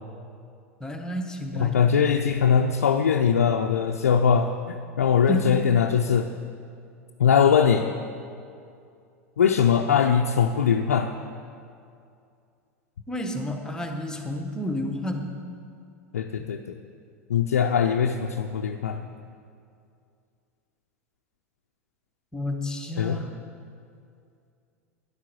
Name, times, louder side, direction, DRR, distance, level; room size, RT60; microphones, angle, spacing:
voice 1, 0.8-1.9 5.3-5.7 13.1-15.4 16.4-16.5 22.3-23.3, left 1 dB, 10° left, 4 dB, 1.2 m, -31 dB
voice 2, 1.6-6.3 7.2-7.9 9.4-11.1 16.1-16.8 17.3-19.1 23.0-23.2, left 7 dB, 80° left, 3 dB, 0.5 m, -21 dB
10.5 x 8.2 x 6.2 m, 2.4 s
hypercardioid pair, 90°, 8 cm